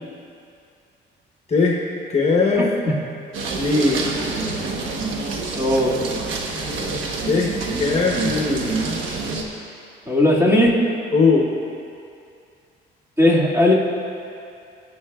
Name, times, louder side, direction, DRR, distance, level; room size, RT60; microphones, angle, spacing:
voice 1, 1.5-1.8 2.1-2.7 3.5-4.1 6.6-7.0 7.2-8.7 11.1-11.4, left 4 dB, 35° left, -1 dB, 1.2 m, -20 dB
voice 2, 2.6-2.9 5.6-5.9 10.1-10.8 13.2-13.7, left 1 dB, 15° right, -6 dB, 2.2 m, -17 dB
sound 1, 3.3-9.4, right 3 dB, 85° right, 1.2 m, -27 dB
19.5 x 8.7 x 2.4 m, 2.4 s
cardioid pair, 90°, 20 cm